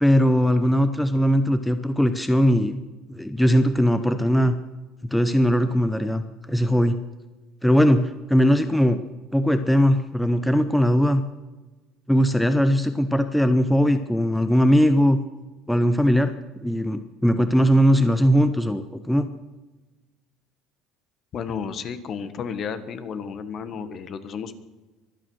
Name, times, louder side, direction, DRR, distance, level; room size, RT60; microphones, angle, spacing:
voice 1, 0.0-2.8 3.1-4.6 5.1-7.0 7.6-9.0 9.3-11.2 12.1-15.2 15.7-16.3 16.6-19.3, equal, 5° left, 9 dB, 0.7 m, -20 dB
voice 2, 21.3-24.6, left 6 dB, 40° left, 12 dB, 1.3 m, -32 dB
24.0 x 9.1 x 6.3 m, 1.2 s
cardioid pair, 140°, 0 cm